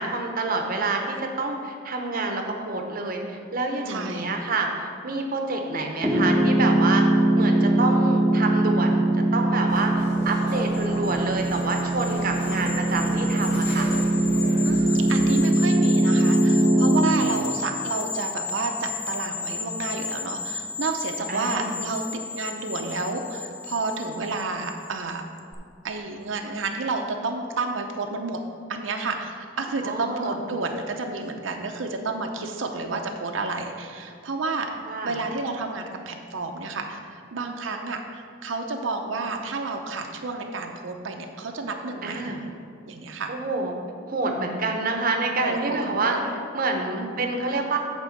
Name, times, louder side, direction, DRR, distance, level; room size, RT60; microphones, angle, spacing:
voice 1, 0.0-7.0 7.3-13.9 21.3-21.7 29.8-30.4 34.9-35.2 42.0-42.4 43.3-43.7 44.1-47.8, right 3 dB, 50° right, 3 dB, 0.7 m, -28 dB
voice 2, 3.9-4.3 14.6-25.2 25.8-28.4 28.7-34.7 35.0-42.5 42.9-43.3 45.4-46.2 46.9-47.2, right 3 dB, 85° right, 3 dB, 0.6 m, -30 dB
Piano, 6.0-17.0, right 1 dB, 5° right, 0.9 m, -21 dB
sound 1, 9.7-15.4, equal, 60° left, 1.7 m, -37 dB
sound 2, 10.4-25.0 25.4-25.5, left 5 dB, 20° left, 0.6 m, -34 dB
8.6 x 3.7 x 6.3 m, 2.2 s
head